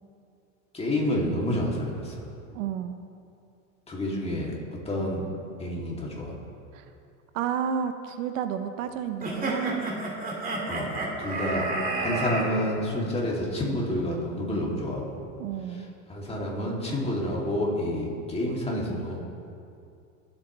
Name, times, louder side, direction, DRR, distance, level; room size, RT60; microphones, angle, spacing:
voice 1, 0.7-2.2 3.9-5.2 5.6-6.3 10.7-10.9 11.2-11.7 11.9-15.2 16.1-19.2, left 1 dB, 15° left, -3 dB, 2.8 m, -29 dB
voice 2, 2.5-3.1 6.7-6.8 7.3-9.8 15.4-15.9, right 8 dB, 75° right, 8 dB, 0.9 m, -31 dB
sound 1, 9.2-12.5, right 2 dB, 20° right, 2.4 m, -30 dB
24.0 x 8.6 x 3.3 m, 2.5 s
supercardioid pair, 115°, 39 cm